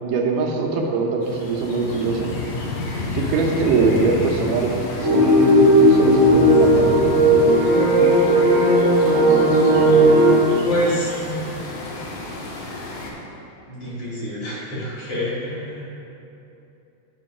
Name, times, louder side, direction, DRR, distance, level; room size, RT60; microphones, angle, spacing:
voice 1, 0.0-2.3 3.2-4.7 5.0-7.1, right 4 dB, 85° right, 0 dB, 2.5 m, -22 dB
sound 1, 1.2-13.1, left 2 dB, 70° left, 2.0 m, -31 dB
sound 2, 5.0-10.3, right 1 dB, 55° right, 0.9 m, -15 dB
voice 2, 10.7-11.5 13.7-15.9, equal, 50° left, -8 dB, 2.2 m, -27 dB
9.5 x 3.8 x 5.4 m, 2.8 s
omnidirectional pair, 3.7 m